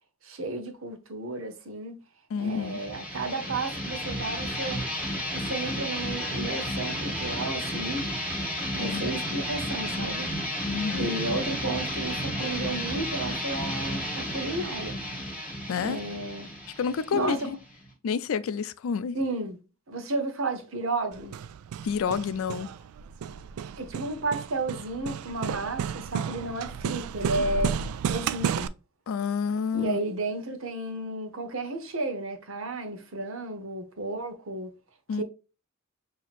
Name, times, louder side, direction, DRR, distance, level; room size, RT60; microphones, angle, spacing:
voice 1, 0.2-2.0 2.4-4.8 5.3-8.1 8.7-10.3 10.9-15.0 15.8-16.5 17.1-17.4 19.1-19.6 19.9-21.4 23.6-28.7 29.7-34.7 35.2-35.3, right 2 dB, 70° right, 0.9 m, -32 dB
voice 2, 2.3-2.8 8.8-9.1 10.6-11.1 15.7-16.0 16.8-17.6 18.0-19.2 21.8-22.7 29.1-30.0 35.1-35.2, left 6 dB, 70° left, 0.3 m, -29 dB
sound 1, 2.5-17.9, equal, 5° right, 1.3 m, -32 dB
Hammer, 21.1-28.7, right 7 dB, 90° right, 0.3 m, -32 dB
5.9 x 2.8 x 2.4 m
head